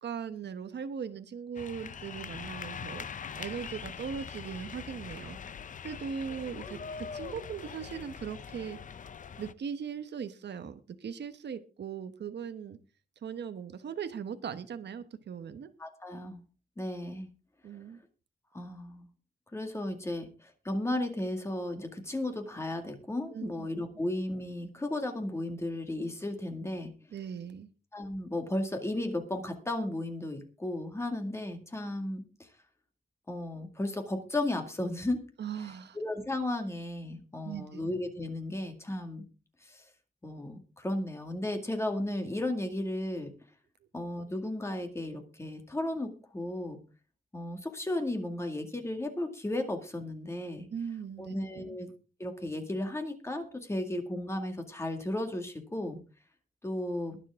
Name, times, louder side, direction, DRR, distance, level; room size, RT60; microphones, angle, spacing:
voice 1, 0.0-5.4 5.8-8.8 9.4-12.8 13.2-15.7 17.6-18.0 23.3-23.7 27.1-27.7 35.4-36.0 37.4-37.8 50.7-51.8, right 7 dB, 80° right, 10 dB, 1.2 m, -39 dB
sound 1, 1.5-9.5, left 6 dB, 50° left, 0.6 m, -42 dB
voice 2, 15.8-16.4 16.8-17.3 18.5-19.1 19.5-26.9 27.9-32.2 33.3-35.3 36.0-39.2 39.6-39.9 40.2-43.3 43.9-46.8 47.3-50.7 51.2-51.9 52.2-56.0 56.6-57.2, left 1 dB, 15° left, 5 dB, 2.0 m, -34 dB
22.0 x 7.4 x 3.7 m, 0.33 s
wide cardioid pair, 175°, 18 cm